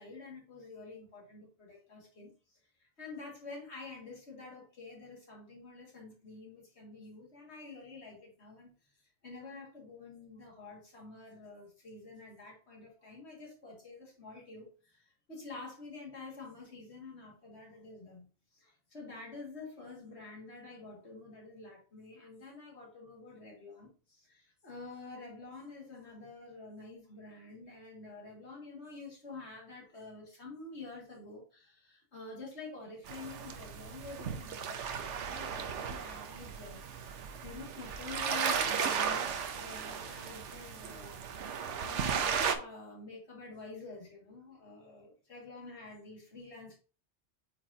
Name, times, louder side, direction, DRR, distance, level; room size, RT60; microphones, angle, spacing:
voice 1, 0.0-8.7 9.2-18.2 18.5-41.2 41.8-46.8, left 3 dB, 65° left, 2.5 m, -48 dB
sound 1, 33.1-42.5, right 7 dB, 75° right, 1.1 m, -35 dB
8.2 x 4.8 x 2.8 m
omnidirectional pair, 1.2 m